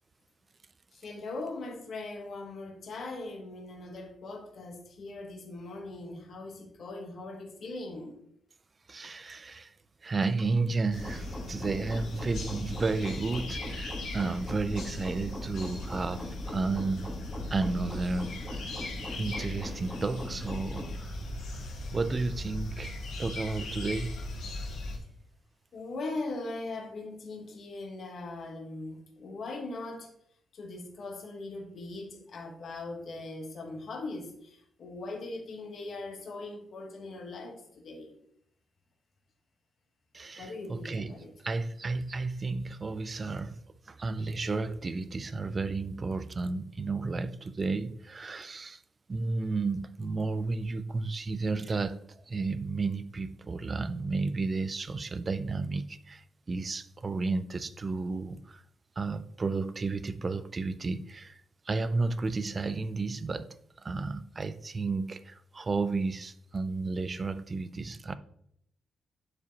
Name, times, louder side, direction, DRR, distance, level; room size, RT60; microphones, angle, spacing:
voice 1, 0.9-8.2 25.7-30.1 30.5-38.1 40.4-41.4, left 2 dB, 45° left, 1.2 m, -40 dB
voice 2, 8.9-9.7 10.0-17.1 17.5-18.7 19.2-21.2 21.5-21.6 21.9-24.2 40.1-41.1 41.4-43.6 43.9-48.8 49.1-52.0 52.3-58.6 59.0-61.4 61.7-63.5 63.8-68.2, right 3 dB, 25° right, 0.4 m, -32 dB
sound 1, 10.9-25.0, left 1 dB, 85° left, 1.7 m, -38 dB
sound 2, 10.9-20.9, left 1 dB, 10° left, 1.3 m, -43 dB
11.0 x 4.9 x 2.9 m
wide cardioid pair, 175°, 0 cm